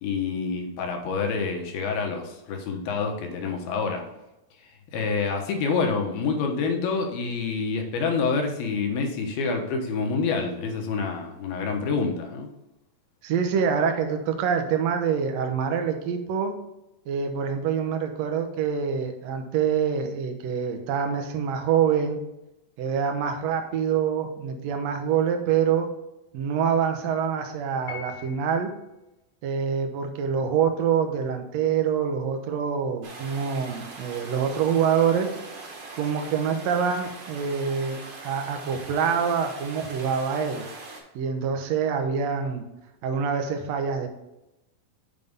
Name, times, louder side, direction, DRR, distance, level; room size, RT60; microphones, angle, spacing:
voice 1, 0.0-4.1 4.6-12.5, left 4 dB, 85° left, 2 dB, 3.1 m, -27 dB
voice 2, 13.2-16.5 17.1-22.2 22.8-25.9 26.3-28.7 29.4-35.3 36.0-40.6 41.1-42.6 43.0-44.1, right 7 dB, 75° right, 5 dB, 1.5 m, -25 dB
Piano, 27.9-28.8, left 7 dB, 65° left, 2.5 m, -41 dB
sound 1, 33.0-41.0, right 3 dB, 50° right, 1.7 m, -41 dB
7.6 x 5.4 x 3.5 m, 0.93 s
omnidirectional pair, 4.3 m